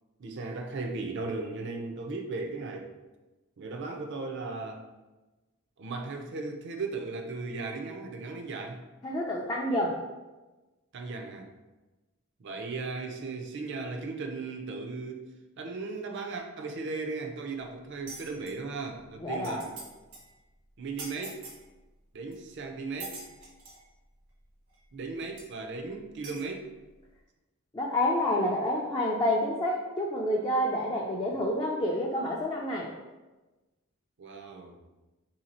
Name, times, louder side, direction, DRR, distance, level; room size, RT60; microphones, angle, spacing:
voice 1, 0.2-2.9 3.6-4.8 5.8-8.8 10.9-11.5 12.4-15.3 15.6-19.8 20.8-21.4 22.1-23.2 24.9-26.7 34.2-34.8, right 3 dB, 60° right, 3 dB, 0.5 m, -36 dB
voice 2, 9.0-10.0 19.2-19.6 27.7-32.9, left 1 dB, 20° left, -3 dB, 0.4 m, -28 dB
sound 1, 18.1-18.5 19.1-19.2 19.3-19.9 20.1-20.3 21.0-21.6 22.3-22.4 23.0-23.8 24.7-24.8 25.4-25.5 26.2-26.4, right 3 dB, 80° right, 1.3 m, -43 dB
3.2 x 2.8 x 4.2 m, 1.2 s
head